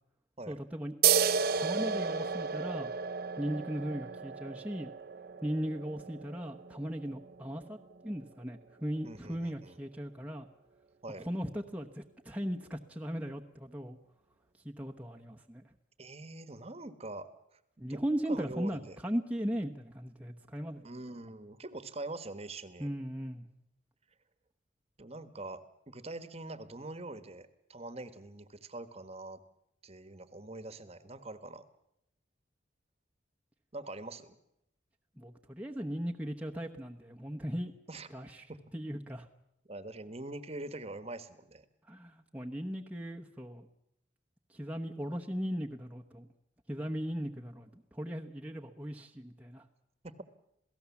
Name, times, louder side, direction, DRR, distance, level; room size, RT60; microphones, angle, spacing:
voice 1, 0.5-0.9 1.6-2.9 3.4-4.9 5.4-7.8 8.0-10.5 11.2-14.0 14.6-15.6 17.8-20.8 22.8-23.5 35.2-37.7 38.1-38.5 38.7-39.3 41.9-43.7 44.5-46.3 46.7-49.6, equal, 5° right, 1 dB, 1.0 m, -37 dB
sound 1, 1.0-8.2, right 7 dB, 55° right, 0.8 m, -33 dB
voice 2, 9.0-9.8 11.0-11.3 16.0-18.0 18.3-19.0 20.8-22.9 25.0-29.4 29.8-31.6 33.7-34.4 37.9-38.1 38.5-38.6 39.7-41.6 50.0-50.2, right 2 dB, 35° right, 12 dB, 1.3 m, -44 dB
27.5 x 17.5 x 7.2 m, 0.80 s
head